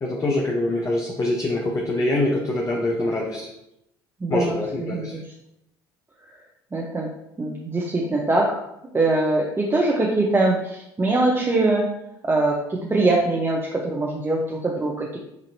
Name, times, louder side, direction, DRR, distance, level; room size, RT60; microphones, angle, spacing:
voice 1, 0.0-3.5 4.3-5.2, left 2 dB, 30° left, -1 dB, 0.8 m, -24 dB
voice 2, 4.2-5.3 6.2-6.3 6.7-7.1 7.4-8.6 8.9-11.9 12.2-15.2, right 2 dB, 20° right, -2 dB, 0.8 m, -23 dB
5.9 x 2.8 x 2.8 m, 0.83 s
hypercardioid pair, 60°, 11 cm